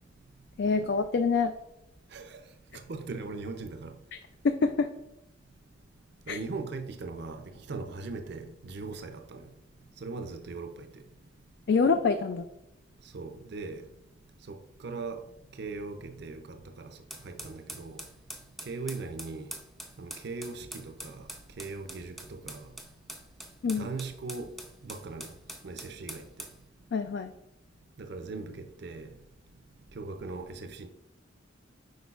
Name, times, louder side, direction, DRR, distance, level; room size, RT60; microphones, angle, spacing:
voice 1, 0.6-1.5 4.4-4.9 6.3-6.4 11.7-12.4 23.6-23.9 26.9-27.3, left 4 dB, 60° left, 0.3 m, -25 dB
voice 2, 2.7-4.0 6.3-9.5 10.0-11.0 13.1-13.8 14.5-15.2 15.6-17.0 17.2-18.0 18.7-19.5 20.0-21.2 21.6-22.7 23.8-24.5 24.8-25.3 25.6-26.2 28.0-29.1 29.9-30.9, right 3 dB, 55° right, 0.5 m, -39 dB
sound 1, 17.1-26.6, right 1 dB, ahead, 0.6 m, -44 dB
7.9 x 5.1 x 2.4 m
head